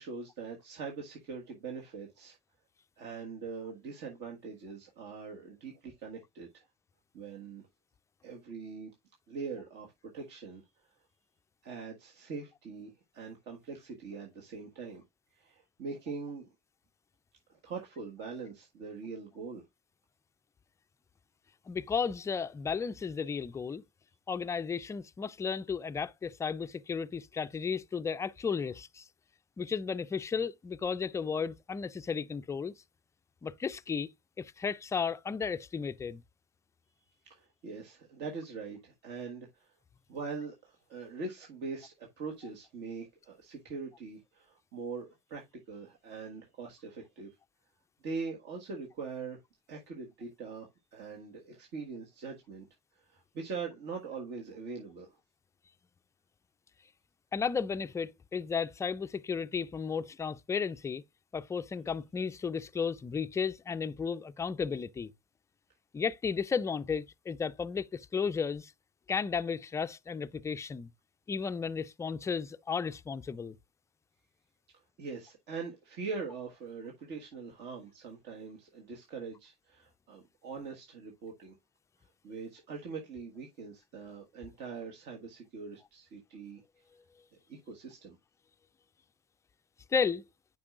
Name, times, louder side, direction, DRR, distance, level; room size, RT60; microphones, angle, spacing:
voice 1, 0.0-2.4 3.0-6.6 7.1-7.7 8.2-8.9 9.3-10.6 11.6-15.0 15.3-16.5 17.5-19.6 37.2-39.7 40.1-47.3 48.0-49.4 49.7-52.7 52.9-55.1 75.0-81.5 82.2-86.6 87.5-88.2, right 4 dB, 55° right, 1.5 m, -42 dB
voice 2, 21.7-23.8 24.3-29.1 29.6-32.7 33.4-34.1 34.4-36.2 57.3-61.0 61.3-65.1 65.9-68.7 69.1-70.9 71.3-73.6 89.9-90.2, left 6 dB, 15° left, 0.3 m, -34 dB
8.6 x 5.4 x 2.4 m
supercardioid pair, 100°, 21 cm